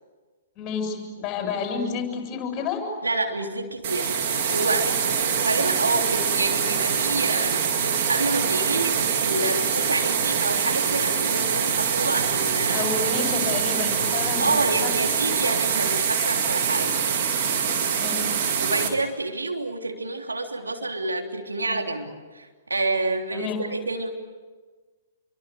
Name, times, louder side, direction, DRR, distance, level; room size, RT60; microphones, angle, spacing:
voice 1, 0.6-2.8 12.7-14.5 14.8-14.9 15.4-15.5 18.0-18.3 23.3-23.6, left 5 dB, 30° left, 4 dB, 7.6 m, -30 dB
voice 2, 3.0-4.2 4.5-5.0 5.4-12.9 14.4-17.0 18.6-24.1, right 2 dB, 80° right, 3 dB, 3.4 m, -28 dB
sound 1, 3.8-18.9, right 7 dB, 45° right, 4.2 m, -24 dB
28.5 x 24.0 x 8.0 m, 1.3 s
figure-of-eight pair, 115°, 0 cm